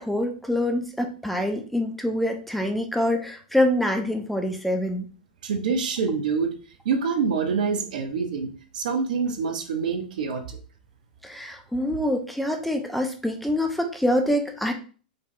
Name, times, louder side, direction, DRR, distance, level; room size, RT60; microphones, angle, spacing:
voice 1, 0.0-5.1 11.2-14.7, left 1 dB, ahead, 3 dB, 0.6 m, -25 dB
voice 2, 5.4-6.6 6.8-10.6, right 5 dB, 60° right, 6 dB, 0.8 m, -26 dB
5.1 x 3.4 x 2.6 m, 0.38 s
figure-of-eight pair, 95°, 5 cm